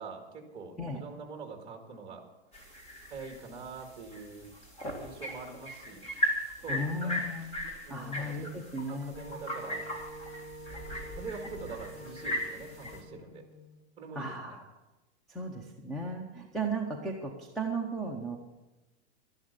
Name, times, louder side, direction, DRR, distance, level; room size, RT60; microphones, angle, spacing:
voice 1, 0.0-2.3 3.1-4.5 5.0-6.0 6.6-7.2 7.9-8.5 8.9-9.9 11.2-13.4 14.0-14.6, right 4 dB, 15° right, 4 dB, 2.0 m, -44 dB
sound 1, 2.5-13.0, equal, 20° left, 2.1 m, -38 dB
voice 2, 6.7-7.5 7.9-9.2 14.1-14.6 15.3-18.4, right 2 dB, ahead, 2 dB, 0.8 m, -35 dB
Wind instrument woodwind instrument, 9.1-13.8, right 1 dB, 65° left, 3.4 m, -47 dB
12.5 x 11.5 x 6.7 m, 1.1 s
supercardioid pair, 160°, 33 cm